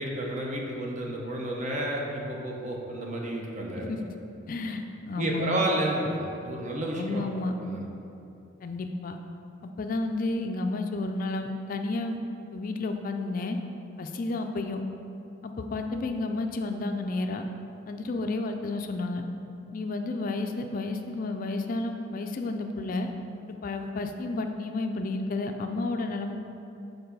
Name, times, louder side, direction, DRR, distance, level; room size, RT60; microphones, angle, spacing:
voice 1, 0.0-3.9 5.2-7.9, right 1 dB, 40° right, -1 dB, 0.8 m, -31 dB
voice 2, 4.5-5.6 6.9-7.5 8.6-9.2 9.6-12.2 12.5-13.6 14.0-14.8 15.4-17.4 17.9-19.2 19.7-23.1 23.5-26.3, left 2 dB, 45° left, 5 dB, 0.3 m, -31 dB
7.0 x 4.0 x 5.2 m, 2.8 s
head